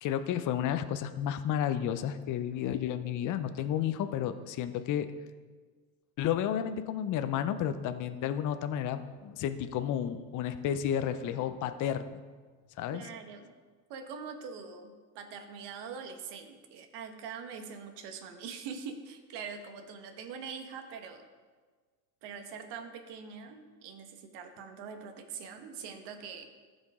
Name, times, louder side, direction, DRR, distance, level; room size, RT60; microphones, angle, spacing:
voice 1, 0.0-5.1 6.2-12.2 12.8-13.0, left 10 dB, 40° left, 10 dB, 0.7 m, -32 dB
voice 2, 12.9-13.5 13.9-21.2 22.2-26.5, right 6 dB, 55° right, 6 dB, 1.4 m, -43 dB
14.5 x 5.3 x 3.7 m, 1.5 s
hypercardioid pair, 95°, 49 cm